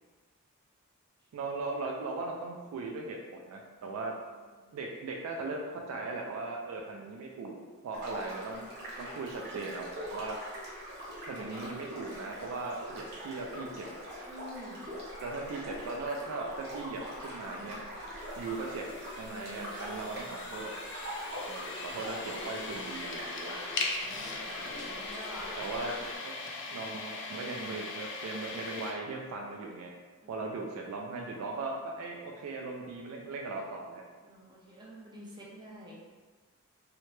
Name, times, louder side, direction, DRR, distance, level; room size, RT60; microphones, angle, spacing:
voice 1, 1.3-4.1 4.7-8.7 9.0-10.4 11.2-13.9 15.2-17.9 18.4-18.9 19.2-20.7 21.5-23.5 25.6-26.3 26.7-29.9 30.3-34.0, right 3 dB, 70° right, 0 dB, 0.3 m, -38 dB
sound 1, 7.9-26.2, equal, 50° right, 0.8 m, -43 dB
voice 2, 14.3-14.8 19.3-20.5 23.7-25.5 30.2-30.6 34.2-36.0, equal, 20° right, -7 dB, 0.6 m, -49 dB
sound 2, 18.2-28.9, left 3 dB, 55° left, 0.4 m, -40 dB
2.8 x 2.1 x 3.0 m, 1.4 s
head